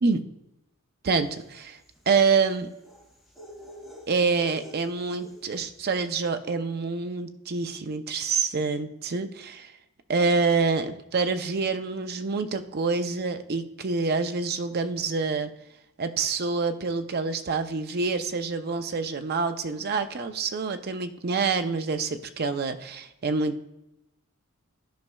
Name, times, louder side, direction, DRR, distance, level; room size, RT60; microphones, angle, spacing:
voice 1, 1.0-1.8 2.1-2.7 4.1-9.7 10.1-15.5 16.0-23.6, right 4 dB, 45° right, 8 dB, 0.5 m, -27 dB
sound 1, 1.3-5.8, equal, ahead, 2.2 m, -48 dB
12.5 x 5.3 x 2.3 m, 0.88 s
head